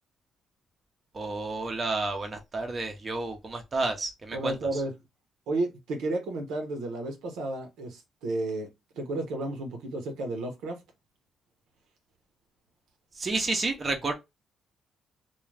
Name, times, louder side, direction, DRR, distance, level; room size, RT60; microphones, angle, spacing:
voice 1, 1.1-4.5 13.2-14.1, right 3 dB, 35° right, 0.6 m, -30 dB
voice 2, 4.3-4.9 5.5-8.7 8.9-10.8, right 2 dB, 85° right, 0.8 m, -32 dB
2.4 x 2.2 x 3.1 m
cardioid pair, 90°, 0 cm